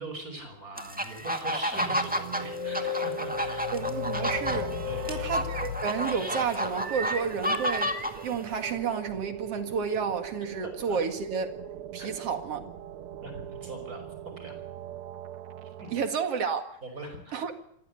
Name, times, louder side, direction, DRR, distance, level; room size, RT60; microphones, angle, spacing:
voice 1, 0.0-3.7 4.8-5.2 10.6-11.0 12.0-12.1 13.2-14.5 15.8-15.9 16.8-17.4, right 2 dB, 25° right, 6.0 m, -41 dB
sound 1, 0.8-8.6, equal, 10° right, 0.5 m, -31 dB
sound 2, 1.7-16.1, right 11 dB, 80° right, 1.2 m, -41 dB
sound 3, 2.3-6.9, left 10 dB, 85° left, 3.2 m, -35 dB
voice 2, 3.7-4.7 5.1-7.9 8.2-11.5 11.9-12.6 15.9-16.8 17.3-17.5, right 6 dB, 50° right, 2.7 m, -31 dB
27.0 x 15.0 x 8.3 m
omnidirectional pair, 4.0 m